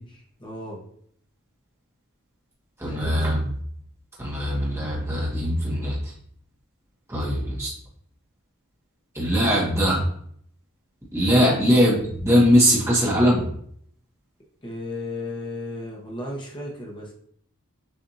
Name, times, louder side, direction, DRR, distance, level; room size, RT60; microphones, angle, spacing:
voice 1, 0.4-0.8 2.8-3.3 11.2-11.6 14.6-17.1, left 1 dB, 20° left, -2 dB, 0.9 m, -34 dB
voice 2, 2.8-3.5 4.2-6.1 7.1-7.7 9.1-10.1 11.1-13.5, equal, 10° right, -6 dB, 1.0 m, -21 dB
6.7 x 2.5 x 2.7 m, 0.64 s
head